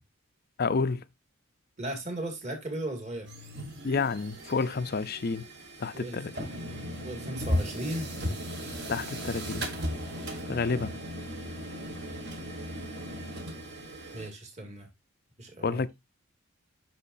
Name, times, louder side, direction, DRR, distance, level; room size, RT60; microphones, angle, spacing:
voice 1, 0.6-1.0 3.8-5.5 5.8-6.5 8.9-9.7 10.5-11.0 15.6-15.9, left 4 dB, 45° left, 0.5 m, -29 dB
voice 2, 1.8-3.3 5.9-6.2 7.0-8.1 14.1-14.9 15.4-15.8, right 1 dB, 30° right, 2.2 m, -36 dB
sound 1, 3.2-14.3, equal, 50° right, 1.8 m, -36 dB
8.3 x 6.3 x 2.6 m
head